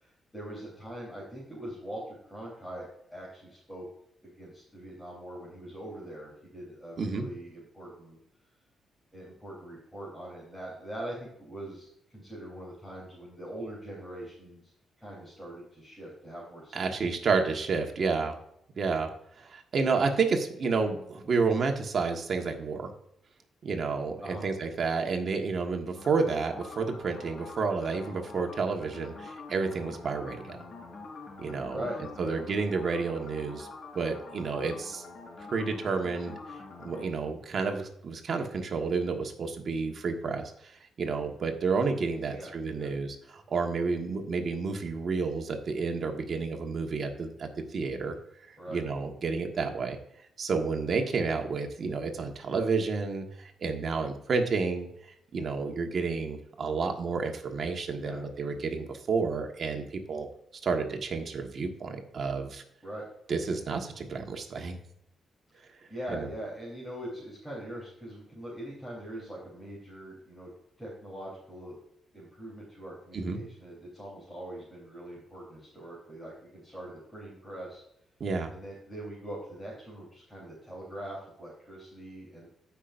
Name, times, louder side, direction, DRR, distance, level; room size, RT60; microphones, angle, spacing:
voice 1, 0.0-3.8 4.2-8.2 9.1-14.6 15.0-17.2 24.2-24.4 31.7-32.4 42.2-42.5 42.8-42.9 48.6-48.8 58.0-58.2 62.8-63.1 65.5-65.6 65.9-70.5 70.8-71.8 72.1-77.8 78.5-82.5, right 1 dB, 5° left, -7 dB, 3.8 m, -42 dB
voice 2, 16.7-18.4 18.8-19.1 19.4-22.9 23.6-30.6 31.4-31.8 32.2-33.7 33.9-35.0 35.5-36.3 36.8-40.7 41.0-48.1 48.5-50.0 50.4-54.9 55.3-60.3 60.6-62.6 63.3-64.8 66.1-66.3 73.1-73.4 78.2-78.5, right 4 dB, 50° right, 3 dB, 1.6 m, -30 dB
sound 1, 26.0-37.1, left 3 dB, 55° left, 3.6 m, -46 dB
16.0 x 5.9 x 2.6 m, 0.75 s
cardioid pair, 115°, 0 cm